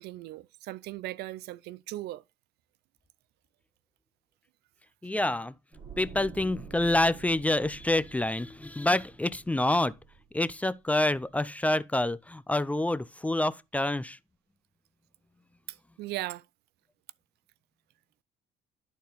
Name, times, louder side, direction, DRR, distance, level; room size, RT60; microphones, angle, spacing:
voice 1, 0.0-2.2 16.0-16.4, right 16 dB, 75° right, 0.4 m, -38 dB
voice 2, 5.0-5.5 6.0-9.9 10.3-14.2, left 1 dB, 10° left, 0.4 m, -27 dB
sound 1, 5.7-10.8 11.1-11.3, right 6 dB, 30° right, 2.9 m, -48 dB
11.5 x 4.2 x 3.9 m
cardioid pair, 110°, 17 cm